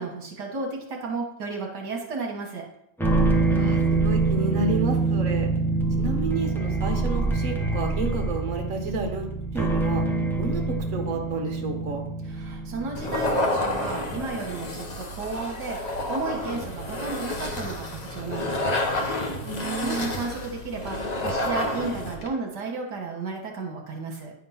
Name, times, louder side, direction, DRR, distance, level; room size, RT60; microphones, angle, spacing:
voice 1, 0.0-2.7 12.3-15.8 16.1-18.7 19.7-21.0 21.2-24.3, right 3 dB, 75° right, 0 dB, 1.7 m, -33 dB
sound 1, 3.0-14.4, right 3 dB, 5° left, 0.3 m, -25 dB
voice 2, 3.5-5.5 6.0-9.2 9.5-10.0 10.4-12.0 19.4-20.1, right 3 dB, 50° right, 2 dB, 1.6 m, -30 dB
sound 2, 12.9-22.3, left 1 dB, 35° left, 0.8 m, -29 dB
9.6 x 3.7 x 5.6 m, 0.76 s
omnidirectional pair, 1.8 m